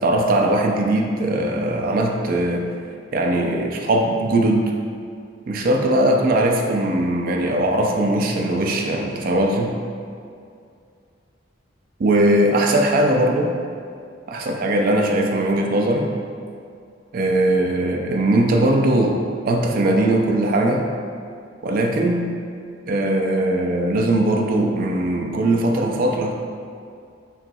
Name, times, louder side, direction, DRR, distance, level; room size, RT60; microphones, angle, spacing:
voice 1, 0.0-2.7 3.1-4.7 5.5-9.8 12.0-13.5 14.3-16.1 17.1-20.9 21.6-22.3 22.9-26.3, right 1 dB, 50° right, 1 dB, 0.4 m, -20 dB
5.4 x 3.0 x 2.3 m, 2.3 s
head